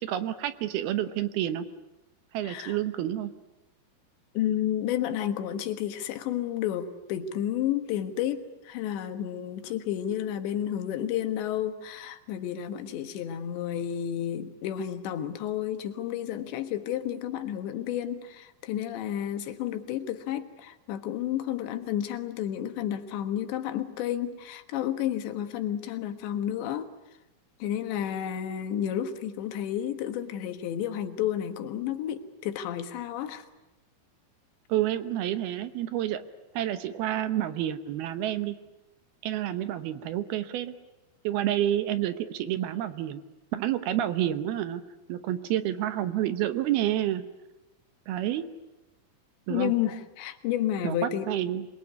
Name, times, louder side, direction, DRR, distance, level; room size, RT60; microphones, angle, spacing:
voice 1, 0.0-1.7 2.3-3.3 34.7-36.2 36.5-38.6 39.2-40.7 41.2-43.2 43.5-44.8 45.1-47.2 48.1-48.5 49.5-49.7 50.8-51.7, right 12 dB, 70° right, 11 dB, 2.7 m, -29 dB
voice 2, 2.4-2.8 4.4-26.9 27.6-33.5 49.5-51.3, left 10 dB, 90° left, 8 dB, 3.8 m, -31 dB
26.5 x 22.0 x 9.6 m, 1.0 s
omnidirectional pair, 4.9 m